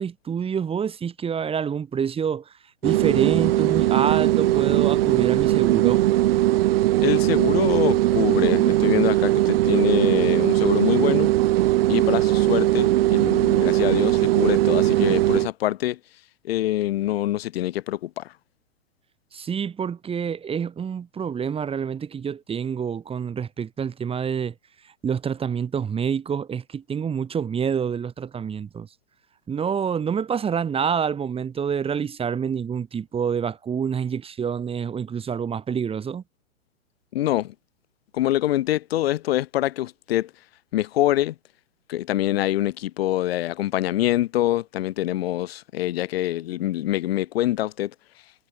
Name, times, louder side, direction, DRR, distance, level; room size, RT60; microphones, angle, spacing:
voice 1, 0.0-2.5 2.8-6.0 19.3-24.5 25.0-28.9 29.5-36.2, right 7 dB, 15° right, 3.6 m, -27 dB
sound 1, 2.8-15.5, right 15 dB, 45° right, 4.0 m, -20 dB
voice 2, 7.0-11.3 11.9-16.0 16.4-18.3 37.1-37.5 38.1-40.3 40.7-41.4 41.9-47.9, left 14 dB, 45° left, 5.3 m, -25 dB
figure-of-eight pair, 110°, 40 cm